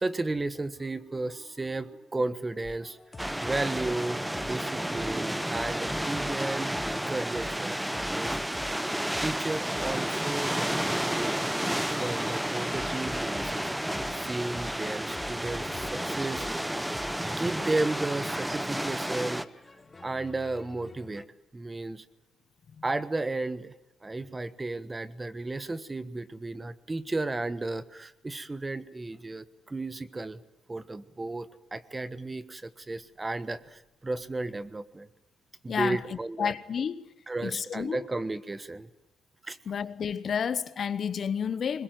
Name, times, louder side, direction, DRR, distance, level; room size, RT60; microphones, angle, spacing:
voice 1, 0.0-3.0 3.4-6.7 7.1-8.4 9.2-11.3 12.0-13.8 14.1-16.5 17.3-19.4 20.0-21.2 21.5-22.0 22.8-23.7 24.0-30.4 30.7-35.1 35.6-36.5 37.3-38.9 39.4-39.6, right 2 dB, 20° right, 1.3 m, -33 dB
sound 1, 2.6-21.2, left 3 dB, 25° left, 1.2 m, -47 dB
sound 2, 3.2-19.5, right 1 dB, 5° right, 0.9 m, -31 dB
voice 2, 35.7-36.0 36.4-37.1 37.4-38.0 39.7-41.8, left 7 dB, 50° left, 1.0 m, -31 dB
21.5 x 21.0 x 9.4 m
cardioid pair, 90°, 0 cm